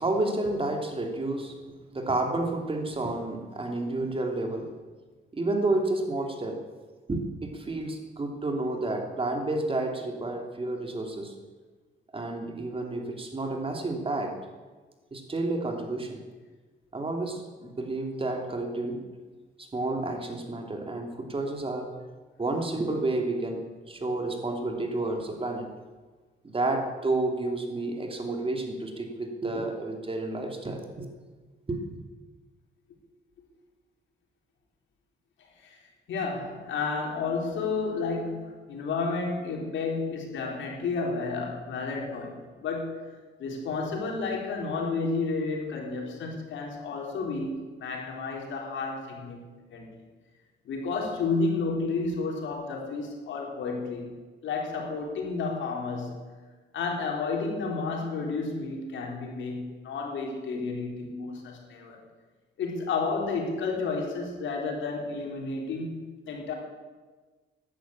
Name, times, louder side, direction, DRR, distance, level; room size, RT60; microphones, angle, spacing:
voice 1, 0.0-1.5 1.9-4.7 5.3-6.6 7.1-11.3 12.1-14.3 15.1-16.2 16.9-19.0 19.6-21.9 22.4-23.6 23.9-25.7 26.4-31.1 31.7-31.8, right 2 dB, 25° right, 3 dB, 2.9 m, -30 dB
voice 2, 36.1-49.9 50.6-54.2 54.4-56.2 56.7-62.0 62.6-66.5, left 4 dB, 70° left, 0 dB, 4.1 m, -31 dB
13.5 x 11.5 x 8.7 m, 1.3 s
cardioid pair, 90°, 20 cm